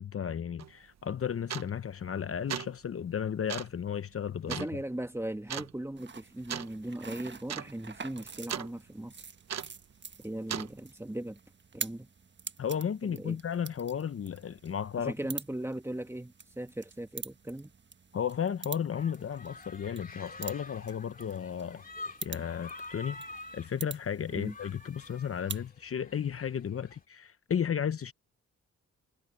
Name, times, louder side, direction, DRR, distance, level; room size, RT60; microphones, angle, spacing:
voice 1, 0.0-4.7 12.6-15.1 18.1-21.9 22.2-23.2 23.5-28.1, left 8 dB, 45° left, 0.9 m, -34 dB
sound 1, 0.6-0.7 1.5-1.9 2.3-2.8 3.5-3.8 4.5-4.7 5.5-5.7 6.5-6.7 7.0-7.1 7.4-7.7 8.0-8.7 9.5-9.8 10.5-10.7, right 9 dB, 60° right, 1.2 m, -37 dB
voice 2, 4.5-9.2 10.2-11.4 11.7-12.1 13.0-13.4 15.0-17.7 24.3-24.6, right 1 dB, 10° right, 1.9 m, -38 dB
sound 2, 6.0-25.7, right 5 dB, 35° right, 1.4 m, -46 dB
sound 3, 18.9-27.0, left 2 dB, 30° left, 2.4 m, -48 dB
cardioid pair, 65°, 30 cm